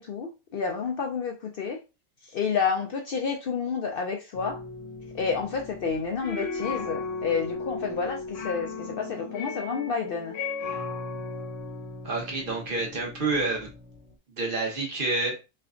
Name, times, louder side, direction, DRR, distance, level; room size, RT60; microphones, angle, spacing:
voice 1, 0.0-1.8 2.2-4.6 5.1-10.4, left 5 dB, 60° left, 2 dB, 0.6 m, -30 dB
sound 1, 4.3-14.1, left 4 dB, 85° left, 1.1 m, -36 dB
voice 2, 12.0-13.7 14.4-15.4, right 3 dB, 45° right, -1 dB, 1.2 m, -28 dB
3.3 x 2.2 x 3.7 m, 0.28 s
omnidirectional pair, 1.3 m